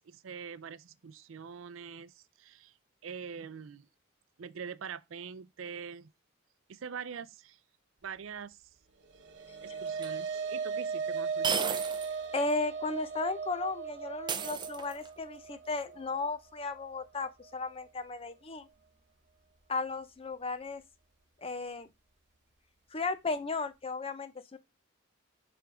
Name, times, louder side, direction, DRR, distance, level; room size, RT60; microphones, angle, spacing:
voice 1, 0.0-2.7 3.0-3.9 4.4-6.1 6.7-7.6 8.0-8.6 9.4-11.9, right 6 dB, 75° right, 0.5 m, -44 dB
sound 1, 9.1-17.7, right 5 dB, 60° right, 1.0 m, -37 dB
sound 2, 10.0-10.1 11.4-12.1 12.5-12.6 14.3-15.2, right 6 dB, 20° right, 0.5 m, -34 dB
voice 2, 12.3-18.7 19.7-20.8 21.4-21.9 22.9-24.6, left 3 dB, 30° left, 0.6 m, -35 dB
7.7 x 3.5 x 4.8 m
head